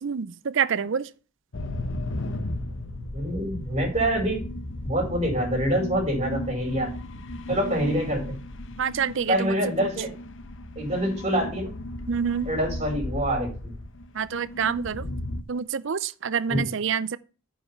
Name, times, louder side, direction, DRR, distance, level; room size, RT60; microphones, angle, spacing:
voice 1, 0.0-1.1 8.8-9.9 12.1-12.5 14.2-15.0 15.5-17.2, right 6 dB, 60° right, 0.5 m, -27 dB
sound 1, 1.5-15.4, left 1 dB, 60° left, 0.9 m, -35 dB
voice 2, 3.1-4.4 4.8-6.9 7.5-8.4 9.3-10.1 10.8-11.7 12.4-13.7 16.5-16.7, equal, 30° right, 4.8 m, -26 dB
9.5 x 5.6 x 5.6 m
head